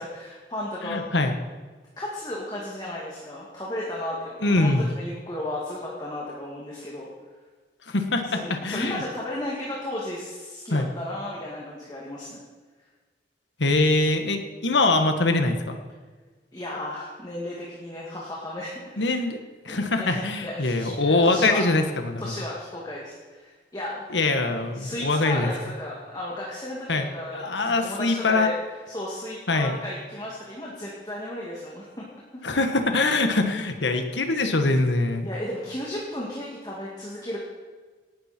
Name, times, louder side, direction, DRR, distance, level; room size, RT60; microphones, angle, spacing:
voice 1, 0.0-1.0 2.0-7.1 8.3-12.4 16.5-19.3 19.7-21.6 22.2-24.1 24.5-28.5 28.9-32.0 32.3-32.6 35.2-37.4, left 1 dB, 25° left, -5 dB, 2.5 m, -34 dB
voice 2, 0.8-1.3 4.4-4.9 7.9-9.0 10.7-10.9 13.6-15.8 19.0-19.4 19.6-22.3 24.1-25.5 26.9-27.1 27.3-28.5 29.5-29.8 32.4-35.3, left 2 dB, 90° left, 6 dB, 1.6 m, -23 dB
18.5 x 12.0 x 4.5 m, 1.4 s
head